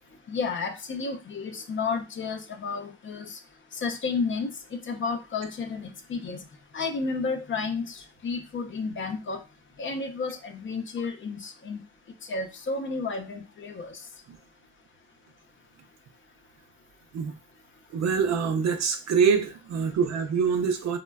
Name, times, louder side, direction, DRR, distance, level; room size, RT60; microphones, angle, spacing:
voice 1, 0.3-3.4 3.8-4.5 4.9-6.4 6.7-9.4 9.8-11.8 12.3-13.9, left 4 dB, 40° left, 5 dB, 0.6 m, -31 dB
voice 2, 17.9-21.0, right 6 dB, 60° right, 7 dB, 0.6 m, -25 dB
3.2 x 2.1 x 2.2 m, 0.29 s
cardioid pair, 90°, 30 cm